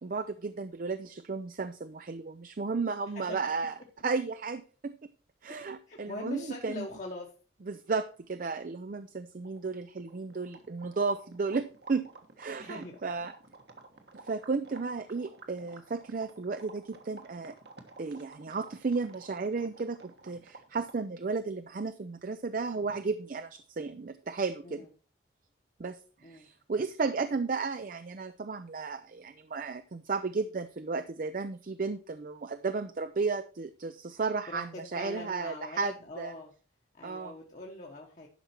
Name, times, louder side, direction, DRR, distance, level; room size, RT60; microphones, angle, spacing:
voice 1, 0.0-3.8 4.0-4.9 5.4-6.9 7.7-12.0 12.4-13.3 14.2-17.5 18.0-24.9 25.8-36.3 37.0-37.3, right 4 dB, 50° right, 11 dB, 0.5 m, -34 dB
voice 2, 5.9-7.3 12.6-13.0 24.6-24.9 26.2-26.5 34.5-36.5 36.9-38.3, left 2 dB, 45° left, -2 dB, 1.2 m, -42 dB
sound 1, 9.1-9.2 9.4-21.1, right 3 dB, 65° right, 1.4 m, -52 dB
11.0 x 5.6 x 4.4 m, 0.38 s
head